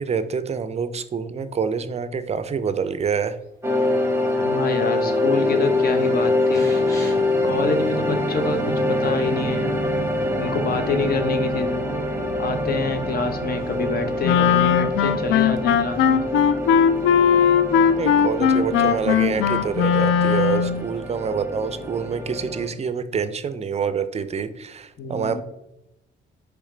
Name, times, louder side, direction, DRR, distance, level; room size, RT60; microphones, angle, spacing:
voice 1, 0.0-3.4 17.9-25.4, right 6 dB, 35° right, 12 dB, 0.4 m, -26 dB
sound 1, 3.6-22.7, left 1 dB, 10° right, 0.9 m, -25 dB
sound 2, 3.8-4.4 4.7-5.2 5.5-7.4 7.9-8.0, equal, 15° left, 1.3 m, -44 dB
voice 2, 4.4-6.6 7.4-9.8 10.4-11.8 12.4-16.2 25.0-25.4, left 4 dB, 50° left, 7 dB, 0.7 m, -27 dB
Wind instrument woodwind instrument, 14.2-20.9, left 8 dB, 80° left, 0.4 m, -19 dB
4.8 x 3.4 x 3.2 m, 0.85 s
cardioid pair, 90°, 20 cm